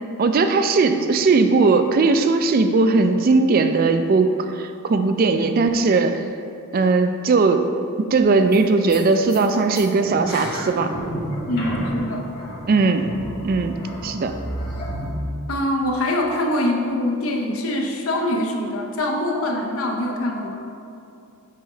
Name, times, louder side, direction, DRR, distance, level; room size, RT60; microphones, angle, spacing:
voice 1, 0.2-6.2 6.7-7.6 8.0-10.9 12.7-13.1 13.4-13.7 14.0-14.3, right 3 dB, 40° right, 8 dB, 0.3 m, -18 dB
sound 1, 8.1-8.2 8.5-8.6 8.9-9.0 9.3-15.1, equal, 45° left, 1.4 m, -31 dB
voice 2, 11.5-12.3 15.5-20.6, left 1 dB, 70° left, 2 dB, 0.7 m, -24 dB
7.5 x 3.0 x 4.9 m, 2.5 s
head